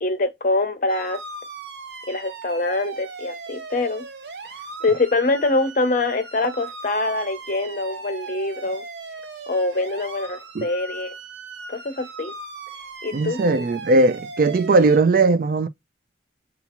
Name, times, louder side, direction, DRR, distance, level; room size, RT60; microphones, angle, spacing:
voice 1, 0.0-1.2 2.1-4.1 4.8-8.8 9.5-11.1 11.7-12.3 13.0-13.4, left 2 dB, 45° left, 0.7 m, -24 dB
sound 1, 0.9-15.0, right 3 dB, 65° right, 0.8 m, -38 dB
voice 2, 13.1-15.7, right 3 dB, 50° right, 0.4 m, -18 dB
6.9 x 2.4 x 2.9 m
head